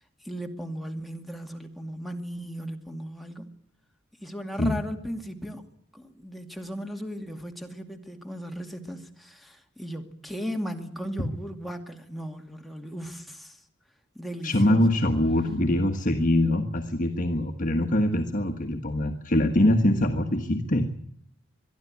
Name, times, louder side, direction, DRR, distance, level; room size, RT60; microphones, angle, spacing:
voice 1, 0.2-3.5 4.2-5.6 5.9-13.6 14.1-15.0, equal, ahead, 2.3 m, -37 dB
voice 2, 14.4-20.9, left 1 dB, 40° left, 1.5 m, -23 dB
23.0 x 12.5 x 9.7 m
head